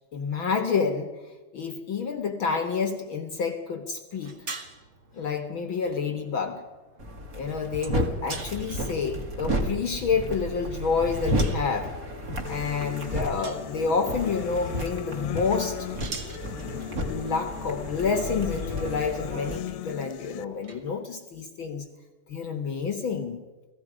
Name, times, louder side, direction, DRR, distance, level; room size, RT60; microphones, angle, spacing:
voice 1, 0.1-1.2 1.5-4.4 5.1-6.6 7.3-11.9 12.5-15.9 16.7-21.9 22.3-23.4, left 5 dB, 60° left, 6 dB, 1.3 m, -29 dB
sound 1, 4.1-21.0, right 3 dB, 70° right, 0.6 m, -46 dB
sound 2, 7.0-19.6, equal, 30° right, 2.2 m, -32 dB
sound 3, 12.5-20.4, left 12 dB, 85° left, 2.6 m, -38 dB
30.0 x 18.0 x 5.0 m, 1.2 s
omnidirectional pair, 4.2 m